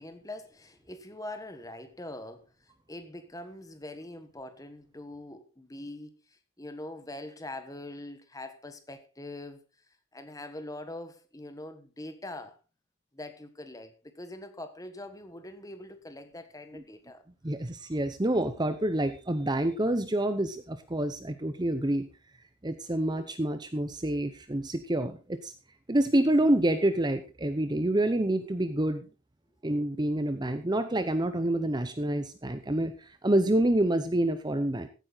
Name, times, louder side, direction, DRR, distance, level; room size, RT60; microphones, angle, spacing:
voice 1, 0.0-9.6 10.1-12.6 13.1-17.2, left 1 dB, 15° left, 1.2 m, -43 dB
voice 2, 17.4-22.1 22.6-25.5 25.9-29.1 29.6-34.9, right 1 dB, 20° right, 0.7 m, -27 dB
15.5 x 9.1 x 4.0 m
head